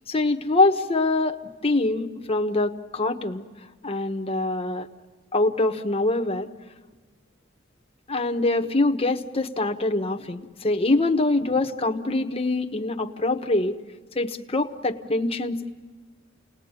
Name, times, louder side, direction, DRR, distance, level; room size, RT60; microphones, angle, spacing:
voice 1, 0.1-1.4 1.6-3.4 3.8-4.9 5.3-6.5 8.1-13.8 14.1-15.7, left 2 dB, 30° left, 5 dB, 1.2 m, -24 dB
29.5 x 19.5 x 9.0 m, 1.5 s
head